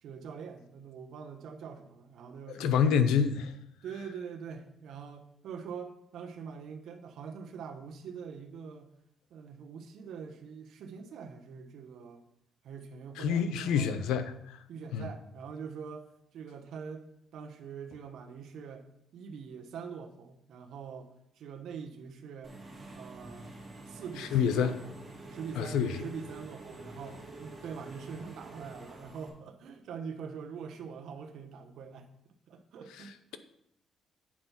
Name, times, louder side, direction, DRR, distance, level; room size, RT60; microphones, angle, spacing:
voice 1, 0.0-3.0 3.8-8.9 9.3-12.2 12.6-13.9 14.7-16.1 16.3-17.1 17.3-18.9 19.1-21.1 21.4-22.6 22.9-23.6 23.9-25.0 25.3-32.1 32.5-33.1, right 6 dB, 75° right, 1.1 m, -44 dB
voice 2, 2.6-3.5 13.2-14.3 14.9-15.1 24.2-24.7 25.6-25.9, left 7 dB, 90° left, 0.6 m, -27 dB
Engine / Mechanisms, 22.4-29.3, right 2 dB, 30° right, 2.4 m, -47 dB
8.7 x 4.5 x 5.7 m
cardioid pair, 90°, 0 cm